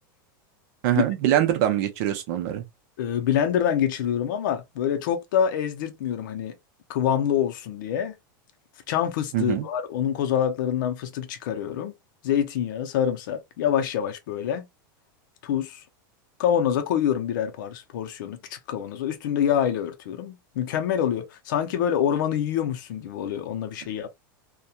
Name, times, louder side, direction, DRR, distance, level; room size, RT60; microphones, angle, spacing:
voice 1, 0.8-2.6 9.3-9.7, right 12 dB, 45° right, 0.6 m, -23 dB
voice 2, 3.0-6.5 6.9-8.1 8.9-11.9 12.2-14.7 15.4-15.8 16.4-24.1, left 9 dB, 60° left, 0.5 m, -26 dB
2.8 x 2.2 x 2.2 m
supercardioid pair, 175°, 12 cm